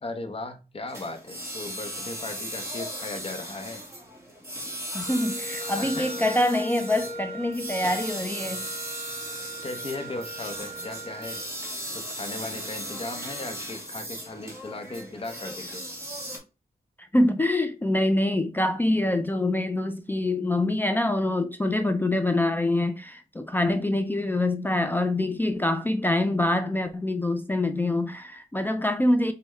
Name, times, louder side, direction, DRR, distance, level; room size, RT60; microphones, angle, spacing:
voice 1, 0.0-3.8 5.7-6.2 9.6-11.4 11.9-15.8, left 2 dB, 35° left, 0.7 m, -37 dB
sound 1, 0.9-16.4, equal, 15° right, 1.2 m, -37 dB
voice 2, 4.9-8.7 17.0-29.3, left 1 dB, 10° left, 0.4 m, -25 dB
Wind instrument woodwind instrument, 5.0-11.5, right 1 dB, 75° right, 0.9 m, -39 dB
5.4 x 2.2 x 3.2 m
wide cardioid pair, 135°, 16 cm